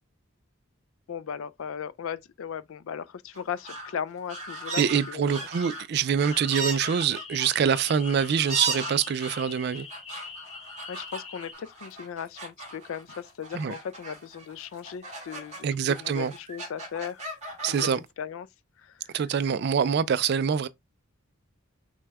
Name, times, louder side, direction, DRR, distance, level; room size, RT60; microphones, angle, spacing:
voice 1, 1.1-4.8 5.1-5.4 10.9-17.2 17.7-18.5 18.8-19.2, left 7 dB, 75° left, 0.4 m, -37 dB
sound 1, 3.3-3.9 4.3-15.6 15.9-17.9, right 3 dB, 30° right, 1.8 m, -37 dB
voice 2, 4.8-9.9 13.5-13.7 15.6-16.3 17.6-18.0 19.1-20.7, right 7 dB, 50° right, 0.3 m, -25 dB
sound 2, 6.3-11.5, left 4 dB, 25° left, 0.8 m, -43 dB
6.0 x 2.2 x 3.5 m
head